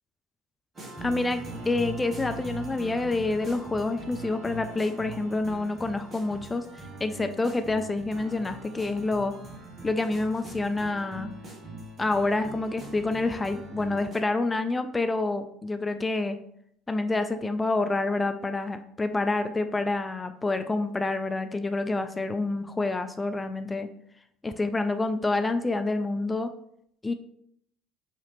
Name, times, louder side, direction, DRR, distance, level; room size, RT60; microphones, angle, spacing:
sound 1, 0.7-14.2, right 2 dB, 30° right, 1.2 m, -41 dB
voice 1, 1.0-9.3 9.8-11.3 12.0-16.4 16.9-23.9 24.4-26.5 27.0-27.1, left 2 dB, 15° left, 9 dB, 0.3 m, -28 dB
4.6 x 2.8 x 3.4 m, 0.71 s
figure-of-eight pair, 60°, 0 cm